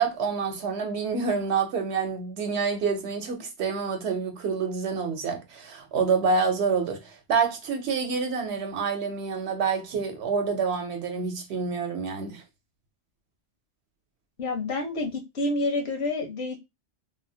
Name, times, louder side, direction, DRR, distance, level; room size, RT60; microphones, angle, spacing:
voice 1, 0.0-12.4, right 5 dB, 75° right, 1.0 m, -27 dB
voice 2, 14.4-16.6, left 2 dB, 70° left, 1.1 m, -28 dB
3.4 x 2.0 x 2.6 m
omnidirectional pair, 1.1 m